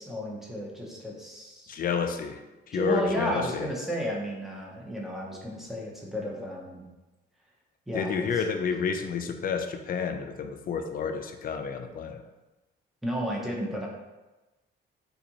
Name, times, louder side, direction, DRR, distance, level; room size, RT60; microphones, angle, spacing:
voice 1, 0.0-1.8 2.7-6.9 7.9-8.3 13.0-13.9, equal, ahead, -3 dB, 0.8 m, -33 dB
voice 2, 1.7-3.7 7.9-12.2, left 6 dB, 45° left, 7 dB, 0.4 m, -30 dB
3.5 x 2.5 x 2.9 m, 1.1 s
cardioid pair, 90°, 20 cm